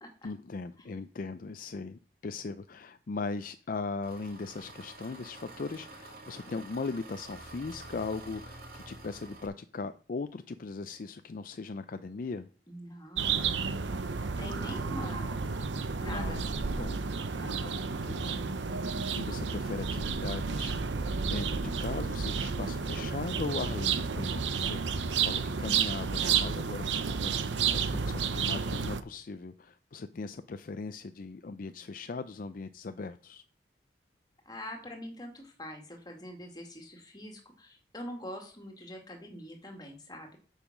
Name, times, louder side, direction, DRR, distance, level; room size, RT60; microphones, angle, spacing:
voice 1, 0.2-12.5 16.1-17.0 17.5-18.4 18.7-33.4, left 4 dB, 50° left, 10 dB, 0.4 m, -39 dB
Engine, 4.0-9.5, right 2 dB, 55° right, 2.1 m, -48 dB
voice 2, 12.7-13.5 14.4-15.6 16.0-16.7 17.3-17.6 34.5-40.4, left 1 dB, 25° left, 3 dB, 2.0 m, -44 dB
sound 1, 13.2-29.0, right 5 dB, 90° right, 0.7 m, -31 dB
7.3 x 7.0 x 6.0 m, 0.41 s
head